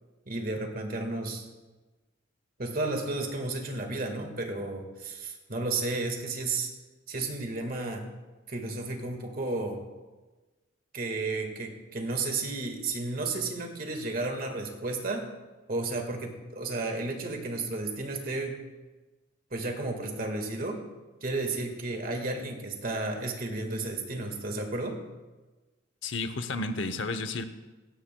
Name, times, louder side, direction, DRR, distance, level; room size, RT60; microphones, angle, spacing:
voice 1, 0.3-1.5 2.6-6.7 7.1-8.1 8.5-9.8 10.9-15.3 15.7-18.6 19.5-20.8 21.2-25.0, right 2 dB, 45° right, 4 dB, 1.7 m, -32 dB
voice 2, 26.0-27.4, left 3 dB, 65° left, 9 dB, 0.8 m, -32 dB
16.5 x 16.5 x 2.2 m, 1.2 s
head